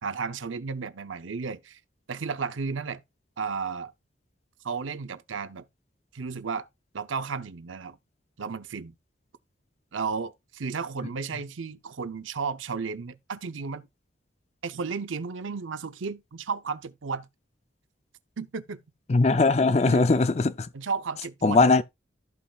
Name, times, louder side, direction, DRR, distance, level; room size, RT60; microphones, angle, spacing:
voice 1, 0.0-1.8 2.1-3.0 3.4-3.9 4.6-5.6 6.1-6.7 6.9-8.0 8.4-8.9 9.9-13.9 14.6-17.3 18.4-18.8 19.9-20.0 20.7-21.6, right 5 dB, 85° right, 0.7 m, -33 dB
voice 2, 19.1-20.7 21.4-21.8, left 3 dB, 35° left, 0.4 m, -20 dB
14.5 x 5.6 x 2.3 m
head